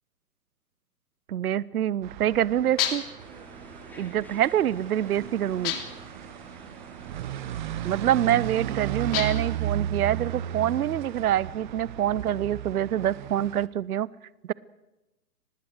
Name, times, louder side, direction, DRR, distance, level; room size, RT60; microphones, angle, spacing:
voice 1, 1.3-3.0 4.0-5.7 7.8-14.1 14.5-14.6, right 11 dB, 65° right, 22 dB, 0.8 m, -26 dB
Residential neighborhood - Stereo Ambience, 2.0-13.7, right 11 dB, 30° right, 0.9 m, -35 dB
sound 1, 2.8-3.2 5.6-6.1 9.1-9.6, left 10 dB, 35° left, 3.2 m, -30 dB
sound 2, 3.2-8.7, equal, 5° left, 3.2 m, -49 dB
24.5 x 20.0 x 6.3 m, 0.99 s
hypercardioid pair, 140°, 48 cm